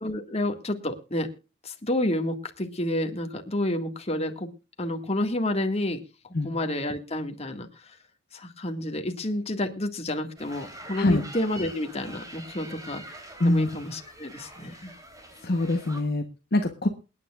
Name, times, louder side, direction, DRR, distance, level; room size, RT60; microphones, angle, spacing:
voice 1, 0.0-1.3 1.6-4.5 4.8-6.0 6.4-7.7 8.3-13.0 13.4-14.9, left 1 dB, 35° left, 5 dB, 1.8 m, -29 dB
sound 1, 10.4-16.0, right 1 dB, 20° right, 3.3 m, -44 dB
voice 2, 15.4-16.2 16.5-16.9, left 1 dB, 55° left, 6 dB, 1.1 m, -23 dB
28.0 x 9.7 x 2.4 m, 0.30 s
head